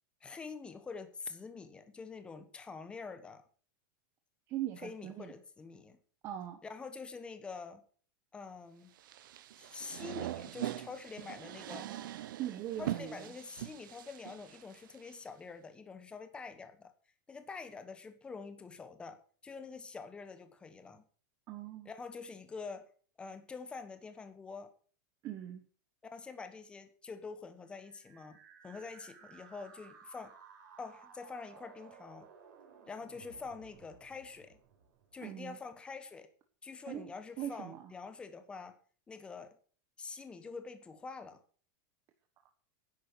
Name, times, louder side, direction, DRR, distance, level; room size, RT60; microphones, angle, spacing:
voice 1, 0.2-3.4 4.8-6.0 6.6-7.8 8.3-8.9 9.6-11.9 12.8-16.9 17.3-19.2 19.4-21.0 21.8-22.8 23.2-24.7 26.1-30.3 30.8-32.3 32.9-34.6 35.1-36.3 36.6-38.8 39.1-39.6 40.0-41.4, left 4 dB, 10° left, 9 dB, 1.1 m, -46 dB
voice 2, 4.5-5.3 6.2-6.6 11.7-13.3 21.5-21.9 25.2-25.6 35.2-35.6 36.9-37.1 37.4-37.9, right 12 dB, 25° right, 6 dB, 1.1 m, -41 dB
sound 1, 9.0-15.1, right 13 dB, 90° right, 0.9 m, -42 dB
sound 2, 27.7-35.6, right 6 dB, 65° right, 4.8 m, -58 dB
10.5 x 8.6 x 6.7 m, 0.44 s
supercardioid pair, 175°, 11 cm